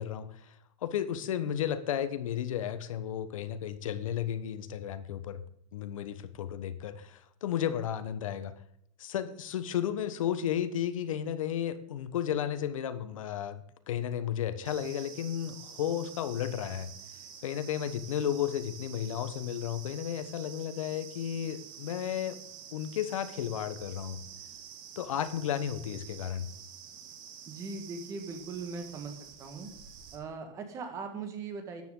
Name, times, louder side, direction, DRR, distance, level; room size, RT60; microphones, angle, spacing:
voice 1, 0.0-5.4 5.7-8.5 9.0-16.9 17.4-22.4 22.7-24.2 25.0-26.5, left 10 dB, 85° left, 12 dB, 1.3 m, -33 dB
sound 1, 14.6-30.1, right 8 dB, 40° right, 2.1 m, -48 dB
voice 2, 27.5-29.1 29.4-29.7 30.1-31.8, right 4 dB, 20° right, 6 dB, 1.7 m, -39 dB
13.5 x 9.8 x 3.9 m, 0.72 s
supercardioid pair, 180°, 17 cm